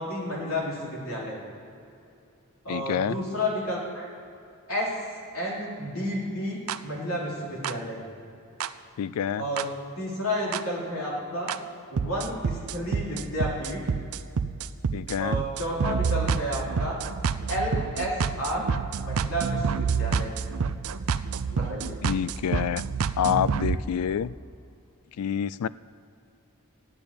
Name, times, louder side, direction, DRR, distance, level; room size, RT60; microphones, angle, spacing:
voice 1, 0.0-1.4 2.6-4.1 4.7-5.0 5.3-8.0 9.3-9.7 9.9-11.5 11.9-13.8 15.2-17.0 17.5-18.7 19.1-20.3 21.5-22.0, equal, 65° left, -4 dB, 3.8 m, -31 dB
voice 2, 2.7-3.2 9.0-9.4 14.9-15.4 22.0-22.8 23.2-24.3 25.2-25.7, left 8 dB, 85° left, 18 dB, 0.3 m, -27 dB
sound 1, 6.7-6.8 7.6-7.7 8.6-8.7 9.6-9.7 10.5-10.6 11.5-11.6 12.0-23.8, right 5 dB, 75° right, 0.5 m, -28 dB
12.0 x 8.6 x 8.8 m, 2.7 s
head